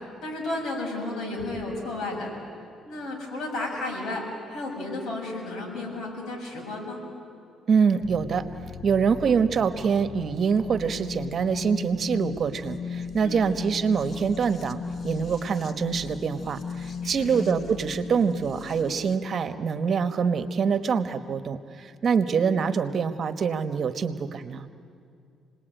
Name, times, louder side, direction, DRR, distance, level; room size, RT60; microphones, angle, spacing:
voice 1, 0.0-2.3 2.8-4.2 4.5-7.0 13.2-13.5 17.0-17.3, left 2 dB, 70° left, 1 dB, 7.0 m, -33 dB
voice 2, 7.7-8.4 8.8-24.7, right 6 dB, 50° right, 10 dB, 1.3 m, -25 dB
sound 1, 8.0-19.2, left 6 dB, 45° left, 1.0 m, -37 dB
28.5 x 19.5 x 9.2 m, 2.4 s
cardioid pair, 90°, 0 cm